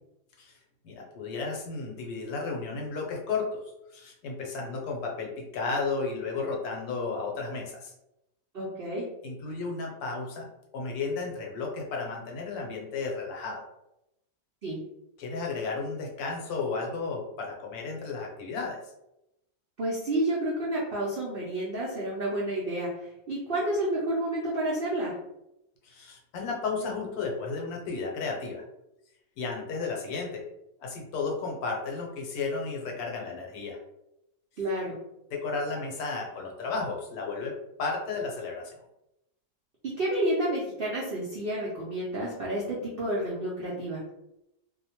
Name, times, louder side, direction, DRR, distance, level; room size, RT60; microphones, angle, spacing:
voice 1, 0.8-7.9 9.2-10.5 10.7-13.7 15.2-18.9 25.8-28.6 29.4-30.4 30.8-33.8 35.3-38.8, left 4 dB, 70° left, -1 dB, 1.1 m, -33 dB
voice 2, 8.5-9.0 14.6-14.8 19.8-25.1 34.6-34.9 40.0-44.0, right 1 dB, 75° right, -5 dB, 0.5 m, -30 dB
2.7 x 2.1 x 2.8 m, 0.86 s
omnidirectional pair, 1.7 m